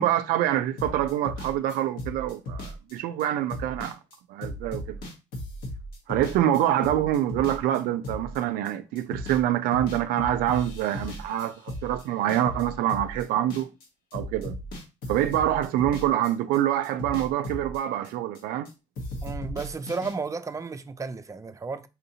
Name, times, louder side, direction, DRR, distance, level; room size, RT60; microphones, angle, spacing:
voice 1, 0.0-4.0 4.3-5.0 6.1-13.7 14.1-14.6 15.1-18.7, right 12 dB, 75° right, 0.4 m, -26 dB
sound 1, 0.8-9.4 9.7-13.9 14.1-16.6 16.8-18.7 19.0-20.1, left 1 dB, 70° left, 1.2 m, -37 dB
voice 2, 19.2-21.9, right 4 dB, 20° right, 0.5 m, -33 dB
4.2 x 2.6 x 2.7 m
hypercardioid pair, 50°, 15 cm